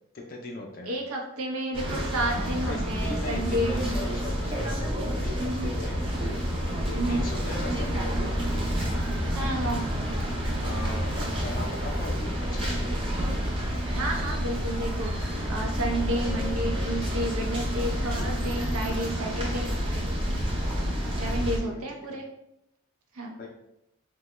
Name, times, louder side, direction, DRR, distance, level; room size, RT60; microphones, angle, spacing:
voice 1, 0.1-1.0 2.6-6.0 6.8-8.4 10.6-12.9 21.6-21.7 22.1-22.2 23.4-23.5, left 2 dB, 40° left, 1 dB, 0.4 m, -39 dB
voice 2, 0.9-4.1 5.3-5.7 6.9-7.2 9.3-9.8 13.9-19.7 21.1-22.2 23.1-23.4, right 1 dB, 85° right, 1 dB, 0.6 m, -31 dB
sound 1, 1.7-21.6, equal, 25° right, 0.5 m, -29 dB
3.0 x 2.2 x 3.0 m, 0.80 s
head